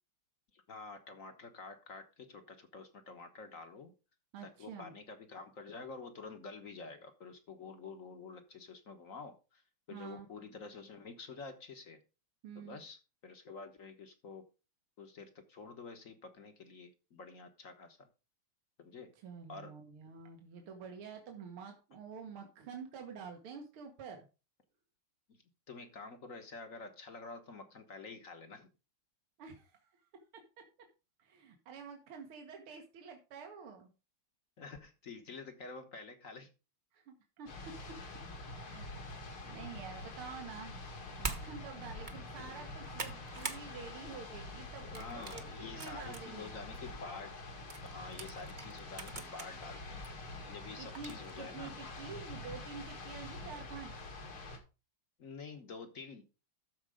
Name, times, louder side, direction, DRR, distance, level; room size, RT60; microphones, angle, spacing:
voice 1, 0.5-3.9 4.4-12.0 12.5-14.4 15.0-18.1 18.8-19.1 19.5-19.7 25.3-28.7 34.6-36.5 42.4-42.7 44.7-47.3 47.8-50.1 50.5-51.7 55.2-56.2, left 4 dB, 45° left, 7 dB, 1.4 m, -49 dB
voice 2, 4.3-4.9 9.9-10.3 12.4-12.8 19.2-24.3 29.4-29.9 31.2-33.9 36.9-37.7 38.5-40.7 41.2-46.5 50.8-54.0, right 6 dB, 75° right, 4 dB, 2.2 m, -48 dB
sound 1, 37.5-54.6, left 2 dB, 75° left, 2.9 m, -46 dB
sound 2, 41.2-41.5 41.9-42.2 42.6-43.6 44.0-44.3 44.9-46.2 46.7-46.8 47.7-49.5 50.0-50.1 50.9-51.3, right 4 dB, 35° right, 0.7 m, -43 dB
13.0 x 4.8 x 4.9 m, 0.31 s
omnidirectional pair, 2.4 m